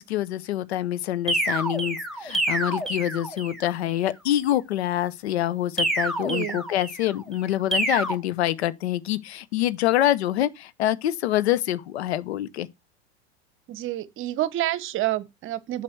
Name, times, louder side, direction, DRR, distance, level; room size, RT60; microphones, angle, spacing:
voice 1, 0.0-12.7, left 13 dB, 75° left, 0.9 m, -26 dB
sound 1, 1.3-3.7 5.8-7.1 7.7-8.1, right 1 dB, ahead, 2.4 m, -27 dB
voice 2, 6.2-6.6 13.7-15.8, right 14 dB, 40° right, 1.1 m, -28 dB
7.6 x 5.8 x 4.6 m
hypercardioid pair, 105°, 33 cm